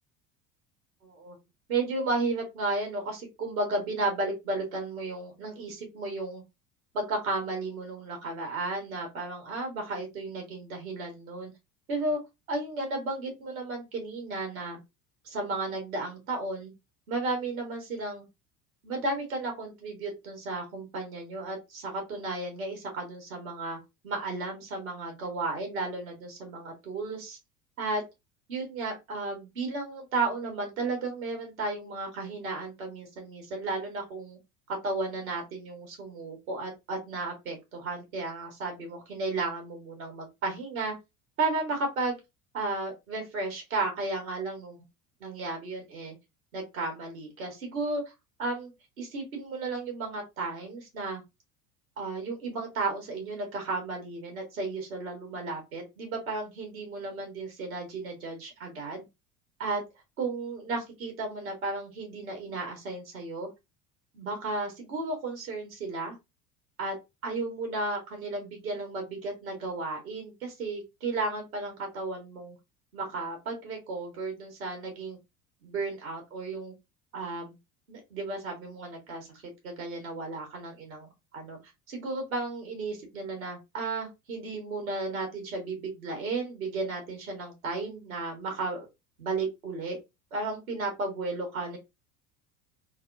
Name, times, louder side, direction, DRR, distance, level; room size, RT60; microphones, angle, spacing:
voice 1, 1.0-1.4 1.7-6.4 6.9-11.5 11.9-12.2 12.5-14.8 15.2-16.7 17.1-18.3 18.8-23.8 24.0-27.4 27.8-28.0 28.5-34.4 34.7-40.9 41.4-42.2 42.5-44.8 45.2-46.1 46.5-48.0 48.4-48.7 49.0-51.2 52.0-59.1 59.6-59.8 60.2-63.5 64.1-66.2 66.8-67.0 67.2-72.6 72.9-75.2 75.6-76.7 77.1-77.5 77.9-81.6 81.9-88.9 89.2-90.0 90.3-91.8, right 3 dB, 70° right, 3 dB, 1.5 m, -34 dB
3.4 x 2.2 x 2.4 m, 0.22 s
figure-of-eight pair, 70°, 44 cm